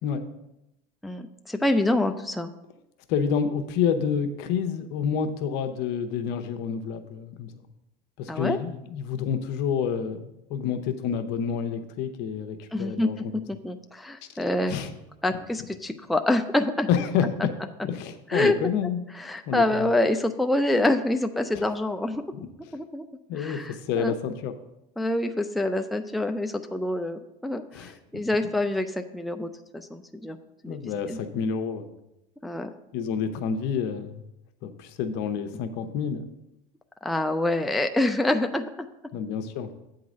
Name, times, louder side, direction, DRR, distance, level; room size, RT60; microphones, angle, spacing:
voice 1, 1.0-2.5 8.3-8.6 12.7-13.3 13.6-14.8 15.2-16.9 17.4-17.5 18.3-18.5 19.2-22.2 22.7-23.0 23.4-24.1 25.0-30.4 30.6-30.8 31.1-31.2 32.4-32.7 37.0-38.9, left 1 dB, ahead, 6 dB, 0.4 m, -26 dB
voice 2, 3.1-7.5 8.2-13.3 14.7-14.9 16.9-17.5 17.8-19.0 19.5-19.9 21.5-21.6 23.3-24.5 27.7-27.9 30.6-31.9 32.9-34.2 34.6-36.3 39.1-39.7, left 7 dB, 70° left, 8 dB, 0.9 m, -28 dB
8.5 x 3.9 x 6.1 m, 0.88 s
supercardioid pair, 115°, 18 cm